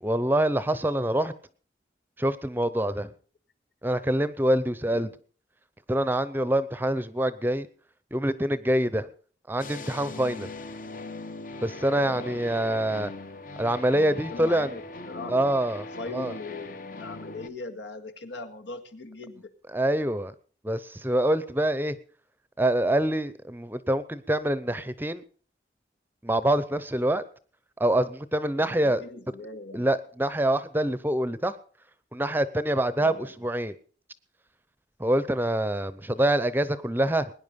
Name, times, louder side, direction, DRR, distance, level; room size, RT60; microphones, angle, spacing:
voice 1, 0.0-1.3 2.2-3.1 3.8-5.1 5.9-7.7 8.1-9.1 9.5-10.5 11.6-13.1 13.6-14.7 15.3-15.9 16.1-16.3 19.7-20.3 20.6-22.0 22.6-25.2 26.2-27.2 27.8-29.0 29.7-31.6 32.1-33.7 35.0-37.3, right 1 dB, 10° right, 15 dB, 0.7 m, -25 dB
voice 2, 4.8-5.2 12.0-12.4 14.3-15.7 16.0-19.5 28.6-29.9 33.0-33.3, left 2 dB, 85° left, 5 dB, 1.9 m, -40 dB
sound 1, 9.6-17.5, left 3 dB, 45° left, 0.9 m, -40 dB
21.5 x 10.5 x 5.3 m, 0.42 s
head